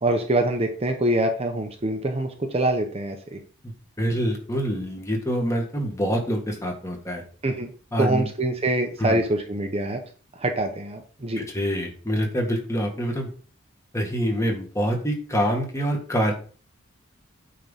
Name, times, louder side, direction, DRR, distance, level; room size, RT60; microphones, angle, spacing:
voice 1, 0.0-3.4 7.4-7.7 8.0-10.0 10.4-11.4, right 1 dB, 30° right, 5 dB, 0.9 m, -25 dB
voice 2, 3.6-7.2 7.9-8.3 9.0-9.2 11.4-13.3 13.9-16.3, equal, 15° left, 2 dB, 1.8 m, -26 dB
9.0 x 3.9 x 5.5 m, 0.40 s
head